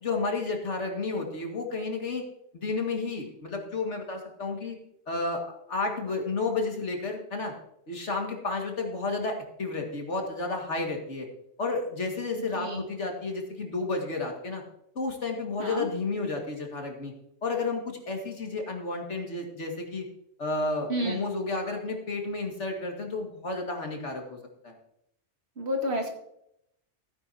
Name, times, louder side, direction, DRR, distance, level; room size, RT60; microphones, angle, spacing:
voice 1, 0.0-2.2 2.5-4.8 5.1-5.4 5.7-7.5 7.9-11.3 11.6-14.6 15.0-17.1 17.4-20.1 20.4-24.4 24.6-24.7, left 3 dB, 70° left, 2 dB, 2.3 m, -31 dB
voice 2, 20.9-21.2 25.6-26.1, equal, 60° right, 1 dB, 2.4 m, -30 dB
16.0 x 9.7 x 2.8 m, 0.76 s
omnidirectional pair, 1.2 m